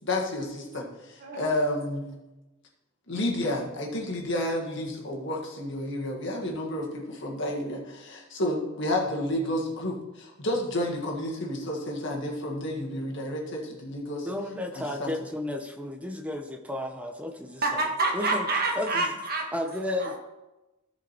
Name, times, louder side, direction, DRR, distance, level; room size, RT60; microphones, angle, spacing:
voice 1, 0.0-2.1 3.1-14.3 14.7-15.1, left 1 dB, 55° left, -1 dB, 1.9 m, -31 dB
voice 2, 1.2-1.5 17.6-19.5 20.0-20.2, right 2 dB, 45° right, 0 dB, 1.7 m, -27 dB
voice 3, 14.2-17.8 18.1-18.5 18.8-19.1 19.5-20.2, left 1 dB, 5° right, 5 dB, 0.8 m, -33 dB
14.5 x 5.2 x 4.4 m, 1.0 s
head